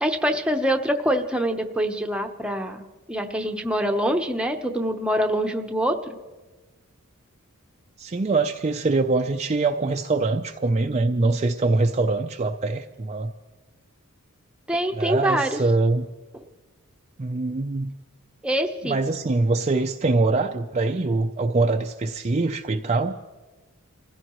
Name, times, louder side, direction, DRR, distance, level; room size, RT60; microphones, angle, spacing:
voice 1, 0.0-2.8 3.1-6.2 14.7-15.6 18.4-19.0, equal, 5° right, 4 dB, 0.8 m, -24 dB
voice 2, 8.0-13.3 15.0-16.0 17.2-17.9 18.8-23.1, right 3 dB, 30° right, 4 dB, 0.5 m, -23 dB
27.5 x 16.0 x 3.1 m, 1.2 s
head